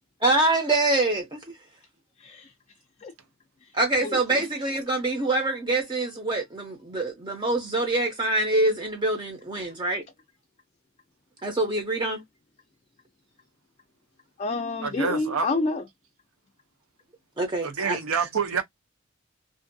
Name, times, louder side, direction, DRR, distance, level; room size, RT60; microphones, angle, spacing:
voice 1, 0.2-1.4 3.7-10.0 11.4-12.2 17.4-18.0, right 2 dB, 20° right, 0.6 m, -25 dB
voice 2, 2.2-2.5 3.0-3.1 3.6-3.7 4.0-4.4 9.6-9.7 14.4-15.8, left 3 dB, 35° left, 0.4 m, -29 dB
voice 3, 14.8-15.5 17.6-18.6, right 5 dB, 90° right, 0.7 m, -27 dB
2.6 x 2.3 x 2.6 m
head